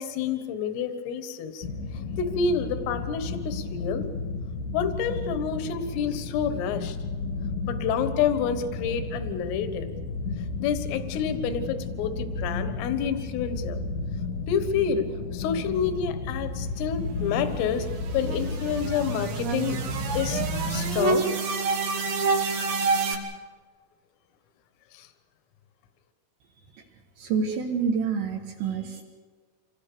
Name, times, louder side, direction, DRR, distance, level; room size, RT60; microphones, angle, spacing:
voice 1, 0.0-1.7 2.2-4.1 4.7-7.0 7.6-9.9 10.6-13.8 14.5-15.1 15.3-17.9 18.1-19.8 20.2-20.4 20.7-21.4 24.9-25.1, left 7 dB, 80° left, 9 dB, 3.9 m, -28 dB
sound 1, 1.6-21.2, left 3 dB, 60° left, 2.4 m, -33 dB
sound 2, 16.8-23.2, right 4 dB, 90° right, 4.9 m, -28 dB
voice 2, 27.2-29.0, right 6 dB, 65° right, 0 dB, 3.6 m, -28 dB
27.0 x 19.5 x 6.9 m, 1.5 s
omnidirectional pair, 5.9 m